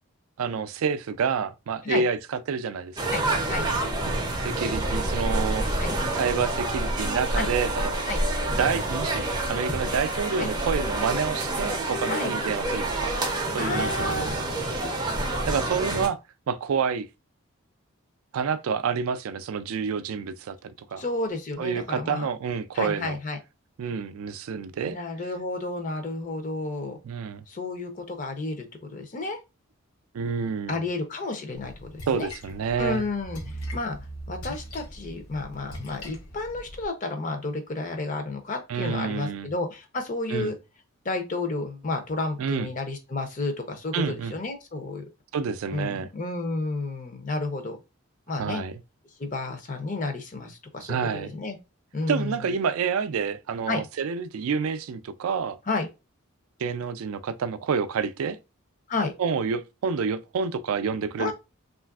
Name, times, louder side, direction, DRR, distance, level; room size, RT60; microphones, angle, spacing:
voice 1, 0.4-3.1 4.4-5.8 6.2-7.9 8.6-13.1 13.5-14.4 15.5-16.2 16.5-17.1 18.3-21.0 21.6-23.2 23.8-25.0 27.0-27.4 30.1-30.8 32.1-33.0 38.7-39.5 40.3-40.5 42.4-42.7 43.9-44.4 45.3-46.1 48.4-48.7 50.8-51.3 52.1-55.6 56.6-58.4 59.2-61.3, right 6 dB, 75° right, 0.4 m, -28 dB
sound 1, 3.0-16.1, right 1 dB, 20° right, 0.5 m, -28 dB
voice 2, 3.1-3.7 5.8-5.9 7.3-7.5 8.1-8.2 10.4-10.5 12.1-12.3 13.6-14.4 21.0-22.3 22.7-23.4 24.9-27.0 27.5-29.4 30.7-31.9 32.2-32.3 32.8-34.0 34.3-40.5 41.0-45.0 45.7-47.8 48.3-48.6 49.2-51.6 51.9-52.4 53.7-53.8 55.7-55.9 58.9-59.1 61.2-61.3, left 3 dB, 35° left, 0.6 m, -31 dB
Splash splatter, 31.5-36.8, equal, 85° left, 0.7 m, -40 dB
3.2 x 2.4 x 2.3 m
head